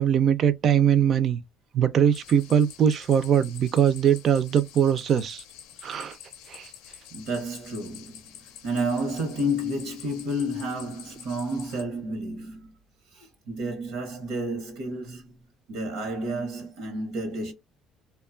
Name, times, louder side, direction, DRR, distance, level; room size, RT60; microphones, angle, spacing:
voice 1, 0.0-1.4 1.7-5.4 5.8-6.2 6.5-6.7, right 8 dB, 50° right, 0.4 m, -21 dB
sound 1, 2.1-11.8, left 10 dB, 90° left, 0.5 m, -47 dB
voice 2, 7.1-12.7 13.1-17.5, equal, 80° right, 1.0 m, -31 dB
2.6 x 2.2 x 2.4 m
cardioid pair, 100°, 0 cm